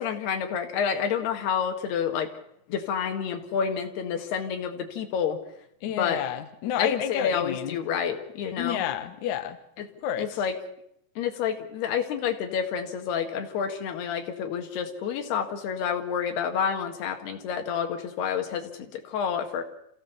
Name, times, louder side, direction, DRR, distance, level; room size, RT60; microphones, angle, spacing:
voice 1, 0.0-2.3 2.7-5.4 6.0-6.2 6.8-8.8 9.8-9.9 10.2-10.5 11.2-19.6, left 7 dB, 90° left, 5 dB, 3.9 m, -29 dB
voice 2, 5.8-7.8 8.6-9.6 10.0-10.3, left 10 dB, 60° left, 8 dB, 2.3 m, -30 dB
27.5 x 15.5 x 7.1 m, 0.75 s
omnidirectional pair, 4.5 m